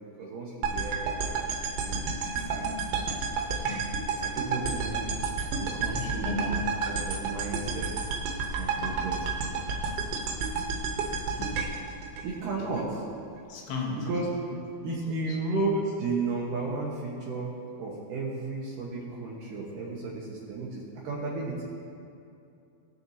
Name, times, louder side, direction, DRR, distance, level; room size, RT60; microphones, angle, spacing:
voice 1, 0.2-1.3 1.8-2.7 4.2-5.0 5.6-7.9 8.6-9.3 12.2-13.0 14.0-14.3 14.8-17.5 17.8-21.6, right 3 dB, 70° right, -4 dB, 2.2 m, -33 dB
sound 1, 0.6-12.8, right 4 dB, 90° right, 3.4 m, -31 dB
voice 2, 5.9-6.6 8.8-9.0 11.4-11.6 13.5-14.0, left 3 dB, 85° left, -1 dB, 3.6 m, -35 dB
19.5 x 6.7 x 2.8 m, 2.6 s
omnidirectional pair, 5.1 m